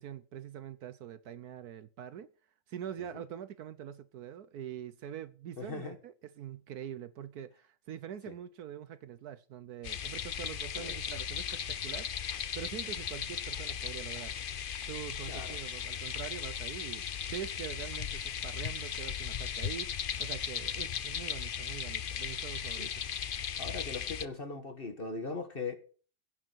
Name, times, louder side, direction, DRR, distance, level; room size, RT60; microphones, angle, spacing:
voice 1, 0.0-2.3 2.7-14.3 14.9-17.0 17.3-22.9, right 9 dB, 70° right, 1.2 m, -44 dB
voice 2, 5.6-5.9 8.3-8.4 10.8-11.0 15.3-15.6 22.8-22.9 23.6-25.8, left 4 dB, 35° left, 1.6 m, -40 dB
sound 1, 9.8-24.3, left 8 dB, 80° left, 0.4 m, -37 dB
16.0 x 6.6 x 6.2 m
omnidirectional pair, 1.8 m